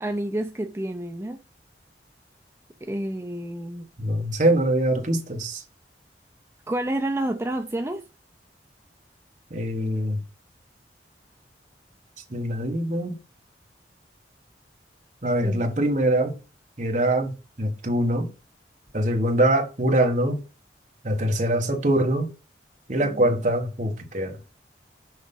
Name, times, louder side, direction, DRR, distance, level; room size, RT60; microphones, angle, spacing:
voice 1, 0.0-1.4 2.8-3.9 6.7-8.0 15.4-15.7 23.0-23.3, right 1 dB, 15° right, 0.5 m, -29 dB
voice 2, 4.0-5.6 9.5-10.2 12.3-13.1 15.2-16.3 16.8-18.3 18.9-20.4 21.0-22.3 22.9-24.4, right 1 dB, 45° right, 1.4 m, -23 dB
6.4 x 5.2 x 5.4 m
head